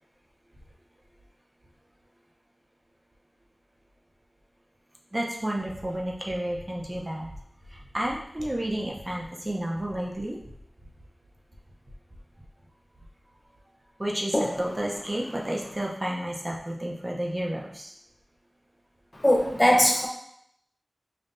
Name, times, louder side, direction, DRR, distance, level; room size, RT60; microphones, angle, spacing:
voice 1, 5.1-7.3 7.7-10.4 14.0-17.9, right 1 dB, 30° right, -2 dB, 0.7 m, -31 dB
voice 2, 19.2-20.1, left 1 dB, 30° left, -1 dB, 0.7 m, -20 dB
5.4 x 2.6 x 2.6 m, 0.73 s
wide cardioid pair, 65°, 0 cm